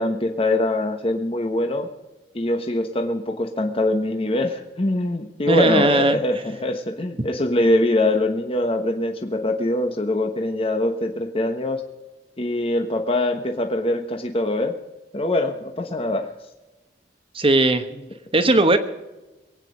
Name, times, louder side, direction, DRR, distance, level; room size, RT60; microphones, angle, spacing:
voice 1, 0.0-1.9 2.3-11.8 12.4-14.7 15.1-16.3 17.9-18.0, left 1 dB, 30° left, 5 dB, 1.1 m, -23 dB
voice 2, 5.5-6.2 17.3-17.8 18.3-18.8, right 2 dB, 30° right, 9 dB, 1.2 m, -17 dB
23.0 x 9.1 x 5.1 m, 1.1 s
head